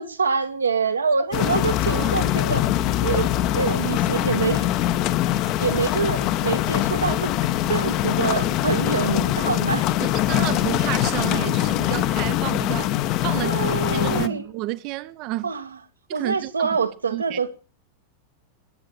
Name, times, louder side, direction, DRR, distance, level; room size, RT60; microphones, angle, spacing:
voice 1, 0.0-2.6 3.0-4.7 5.6-7.3 7.7-9.9 13.4-14.4 15.4-15.7 16.1-17.5, right 5 dB, 75° right, 1.6 m, -25 dB
sound 1, 1.3-14.3, left 13 dB, 40° left, 1.1 m, -23 dB
voice 2, 10.0-13.0 13.2-15.5 16.1-16.8 17.1-17.4, right 18 dB, 40° right, 0.8 m, -31 dB
20.5 x 8.8 x 6.6 m
figure-of-eight pair, 90°, 0 cm